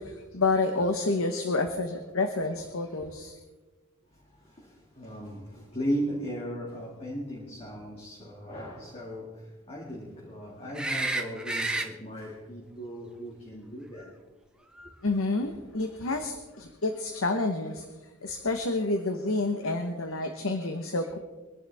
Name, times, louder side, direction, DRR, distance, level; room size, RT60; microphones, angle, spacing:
voice 1, 0.1-3.4 15.0-17.8 18.2-21.2, left 3 dB, 75° left, 5 dB, 1.2 m, -29 dB
voice 2, 4.1-14.2, equal, 30° left, -3 dB, 2.3 m, -37 dB
sound 1, 10.7-11.9 14.8-14.9, right 2 dB, 5° right, 0.9 m, -30 dB
24.0 x 11.0 x 3.6 m, 1.2 s
head